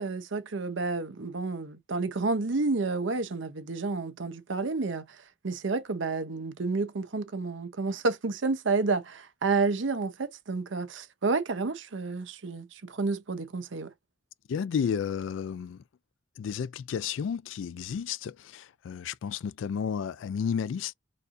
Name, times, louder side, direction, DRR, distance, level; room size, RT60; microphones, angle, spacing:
voice 1, 0.0-5.1 5.4-13.9, right 3 dB, 80° right, 0.7 m, -30 dB
voice 2, 14.5-15.8 16.4-20.9, left 7 dB, 80° left, 0.3 m, -32 dB
4.3 x 2.6 x 2.4 m
head